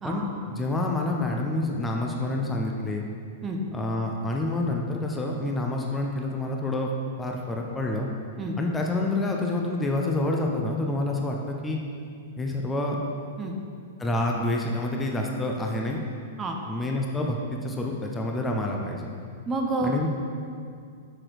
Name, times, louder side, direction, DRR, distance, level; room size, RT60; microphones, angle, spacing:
voice 1, 0.0-3.0 3.7-6.9 7.2-8.1 8.6-11.8 12.4-13.0 14.0-16.0 16.7-17.4 17.6-19.1 19.8-20.1, left 2 dB, 10° left, 0 dB, 0.7 m, -28 dB
voice 2, 19.5-20.1, right 2 dB, 20° right, 2 dB, 0.8 m, -29 dB
6.5 x 5.8 x 4.9 m, 2.3 s
figure-of-eight pair, 100°, 0 cm